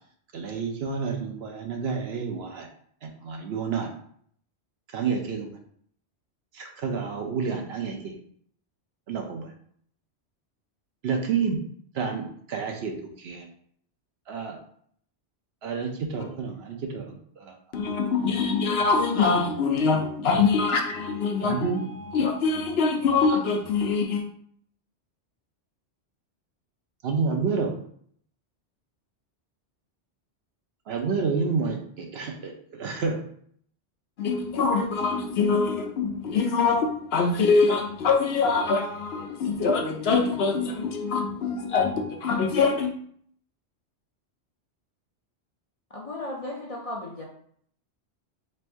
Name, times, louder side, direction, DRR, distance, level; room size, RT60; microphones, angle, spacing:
voice 1, 0.3-2.7 3.0-3.9 4.9-5.5 6.5-8.2 9.1-9.5 11.0-11.6 11.9-13.4 14.3-14.6 15.6-17.5 21.4-21.8 27.0-27.7 30.9-33.2, right 5 dB, 65° right, 0.9 m, -29 dB
voice 2, 17.7-24.2 34.2-42.9, left 4 dB, 65° left, 0.8 m, -24 dB
voice 3, 45.9-47.2, left 1 dB, 40° left, 0.6 m, -35 dB
3.2 x 2.6 x 4.4 m
omnidirectional pair, 1.2 m